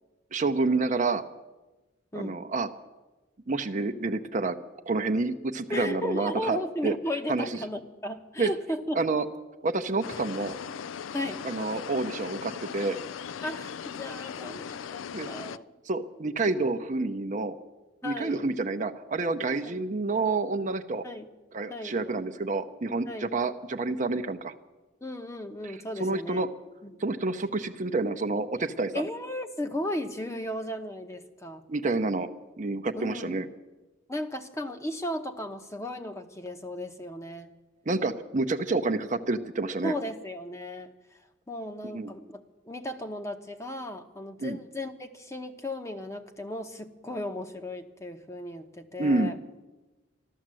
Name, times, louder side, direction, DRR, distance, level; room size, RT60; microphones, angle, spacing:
voice 1, 0.3-1.3 2.1-2.7 3.5-4.6 4.9-6.6 6.8-6.9 7.3-7.5 8.4-8.5 9.0-9.3 9.6-10.6 11.4-13.0 15.1-15.3 15.9-17.6 18.0-21.0 21.5-24.5 25.6-25.7 26.0-26.5 27.0-29.0 31.7-32.3 32.6-33.5 37.9-39.9 41.9-42.1 44.4-44.6 49.0-49.3, right 3 dB, 40° right, 7 dB, 0.7 m, -28 dB
voice 2, 5.7-9.0 11.1-11.4 13.4-15.6 16.6-16.7 18.0-18.5 19.6-19.8 21.0-21.3 21.7-22.0 23.1-23.3 25.0-26.4 26.8-27.0 28.9-31.6 33.0-33.4 34.1-37.5 39.8-40.9 41.5-49.3, left 1 dB, 15° left, 6 dB, 0.9 m, -35 dB
sound 1, 10.0-15.6, left 7 dB, 80° left, 0.4 m, -38 dB
14.0 x 12.5 x 7.6 m, 1.1 s
head